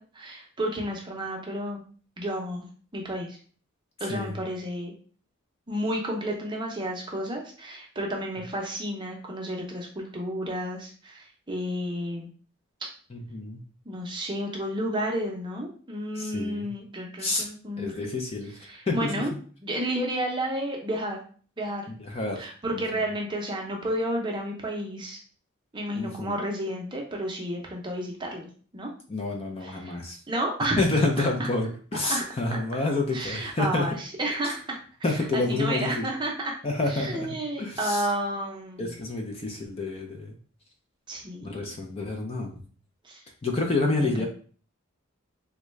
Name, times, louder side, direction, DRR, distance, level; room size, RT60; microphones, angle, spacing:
voice 1, 0.0-1.8 2.2-2.7 2.9-3.4 4.0-4.9 5.7-12.3 12.8-12.9 13.9-17.9 18.7-19.3 19.6-21.2 21.6-21.9 22.4-25.2 25.7-28.5 28.7-28.9 29.6-30.0 30.3-30.8 31.2-31.5 32.1-32.3 33.1-36.5 36.9-39.0 41.1-41.6 43.0-43.2 43.8-44.3, right 1 dB, 20° right, 0 dB, 0.6 m, -31 dB
voice 2, 13.1-13.6 16.2-16.7 17.2-17.5 17.8-18.5 18.9-19.2 22.1-22.5 22.7-22.8 26.0-26.4 29.1-30.2 30.8-34.0 35.0-36.1 36.6-38.1 38.8-40.3 41.4-42.5 43.4-44.3, left 2 dB, 30° left, 2 dB, 0.4 m, -28 dB
3.5 x 2.2 x 3.1 m, 0.43 s
head